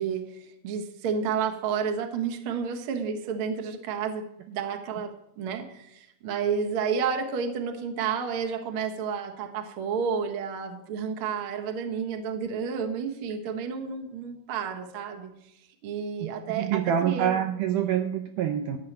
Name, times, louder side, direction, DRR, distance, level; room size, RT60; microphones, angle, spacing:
voice 1, 0.0-15.5 15.8-17.4, right 6 dB, 55° right, 4 dB, 1.5 m, -31 dB
voice 2, 16.2-18.8, right 9 dB, 75° right, 5 dB, 2.0 m, -26 dB
13.5 x 5.6 x 8.8 m, 0.81 s
omnidirectional pair, 4.2 m